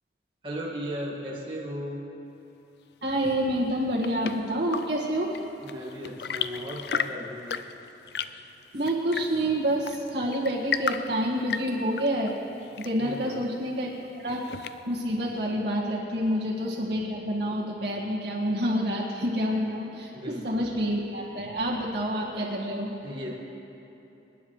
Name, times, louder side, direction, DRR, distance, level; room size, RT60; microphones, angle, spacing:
voice 1, 0.4-2.0 5.6-7.6 13.0-13.4 16.2-16.3 20.1-20.7 23.0-23.4, equal, 30° right, -5 dB, 1.7 m, -36 dB
voice 2, 3.0-5.3 8.7-12.3 12.8-13.9 14.2-20.1 20.4-22.9, equal, 90° right, -5 dB, 1.7 m, -28 dB
Chirp tweet / Engine / Tap, 3.6-15.1, left 7 dB, 70° left, 0.4 m, -36 dB
27.5 x 10.0 x 3.2 m, 3.0 s
head